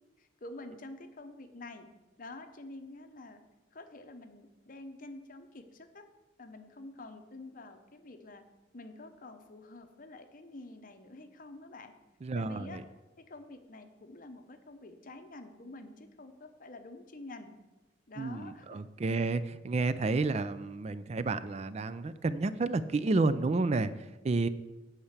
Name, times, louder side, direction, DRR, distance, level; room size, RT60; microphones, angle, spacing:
voice 1, 0.2-1.9 2.2-3.4 3.7-6.1 6.4-8.4 8.7-11.9 12.3-12.8 13.2-17.5 18.1-18.8 19.1-19.4, left 2 dB, 45° left, 7 dB, 0.9 m, -48 dB
voice 2, 12.2-12.8 18.2-24.5, right 3 dB, 35° right, 14 dB, 0.4 m, -30 dB
8.7 x 5.8 x 8.1 m, 1.1 s
head